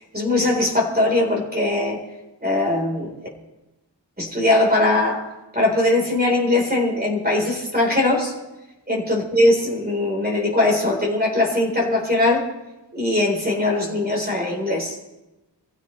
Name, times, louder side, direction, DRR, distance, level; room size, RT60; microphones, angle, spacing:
voice 1, 0.1-2.0 2.4-3.1 4.2-8.3 8.9-12.5 12.9-15.0, left 2 dB, 20° right, 0 dB, 4.1 m, -20 dB
23.5 x 15.5 x 3.3 m, 1.0 s
wide cardioid pair, 100°, 44 cm